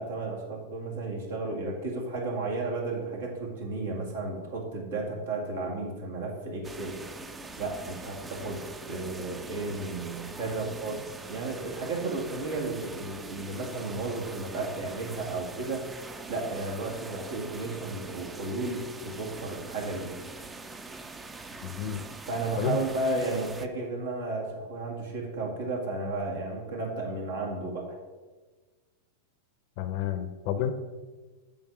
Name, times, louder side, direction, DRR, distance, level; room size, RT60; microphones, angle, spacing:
voice 1, 0.0-7.0 7.6-11.0 11.2-15.9 16.3-20.1 22.3-28.0, right 2 dB, 75° right, -1 dB, 2.1 m, -33 dB
sound 1, 6.6-23.7, right 3 dB, 15° right, 0.5 m, -43 dB
voice 2, 21.6-22.1 22.6-22.8 29.8-30.7, left 9 dB, 55° left, 10 dB, 0.6 m, -30 dB
7.8 x 3.7 x 6.0 m, 1.3 s
hypercardioid pair, 100°, 0 cm